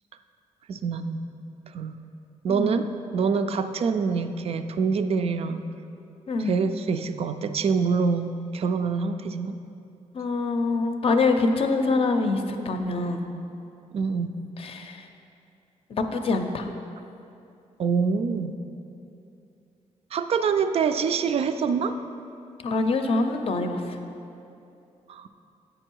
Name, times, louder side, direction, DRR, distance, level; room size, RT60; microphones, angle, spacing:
voice 1, 0.7-1.3 1.7-1.9 2.4-5.6 6.5-9.6 13.9-14.3 17.8-18.6 20.1-22.0 25.1-25.3, right 5 dB, 55° right, 9 dB, 0.4 m, -25 dB
voice 2, 6.3-6.6 10.1-13.3 14.6-15.1 15.9-16.7 22.6-24.0, left 3 dB, 50° left, 6 dB, 0.5 m, -25 dB
8.7 x 5.3 x 4.5 m, 2.7 s
wide cardioid pair, 155°, 13 cm